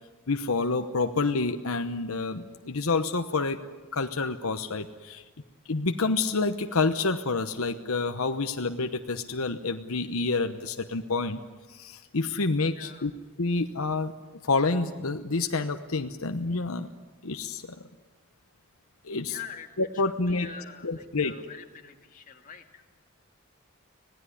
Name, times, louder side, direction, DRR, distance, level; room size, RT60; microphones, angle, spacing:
voice 1, 0.3-3.6 3.9-5.2 5.7-11.4 11.7-13.1 13.4-14.1 14.4-16.9 17.2-17.6 19.0-19.4 19.8-20.5 20.8-21.3, left 3 dB, 80° left, 7 dB, 1.0 m, -28 dB
voice 2, 12.7-13.1 19.3-19.7 19.9-22.8, left 7 dB, 35° left, 3 dB, 2.3 m, -45 dB
26.0 x 18.0 x 9.9 m, 1.3 s
head